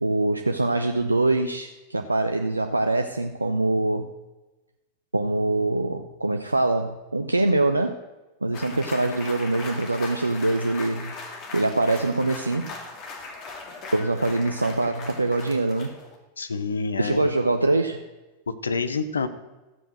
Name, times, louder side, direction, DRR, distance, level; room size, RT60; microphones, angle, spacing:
voice 1, 0.0-4.1 5.1-8.0 8.4-11.1 11.5-12.7 13.9-15.9 17.0-18.0, right 2 dB, 80° right, 6 dB, 0.6 m, -24 dB
sound 1, 8.5-16.2, left 3 dB, 40° left, 2.2 m, -39 dB
voice 2, 16.4-17.3 18.5-19.3, left 4 dB, 75° left, 12 dB, 0.9 m, -27 dB
14.0 x 7.8 x 6.2 m, 1.1 s
figure-of-eight pair, 90°, 0 cm